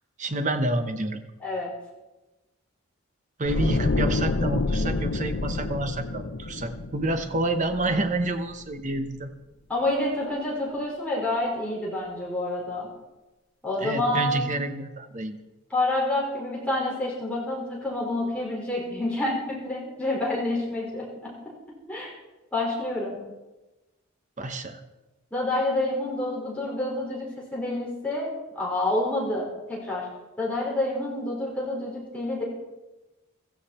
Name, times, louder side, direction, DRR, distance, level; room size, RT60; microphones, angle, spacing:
voice 1, 0.2-1.2 3.4-9.3 13.8-15.4 24.4-24.8, right 2 dB, 35° right, 7 dB, 1.0 m, -28 dB
sound 1, 3.4-8.5 8.8-9.1, left 2 dB, 50° left, 0.7 m, -28 dB
voice 2, 9.7-12.9 13.6-14.5 15.7-21.3 21.9-22.1 22.5-23.2 25.3-30.1 30.4-32.4, left 1 dB, 5° left, -6 dB, 5.1 m, -28 dB
16.0 x 14.0 x 4.4 m, 1.1 s
head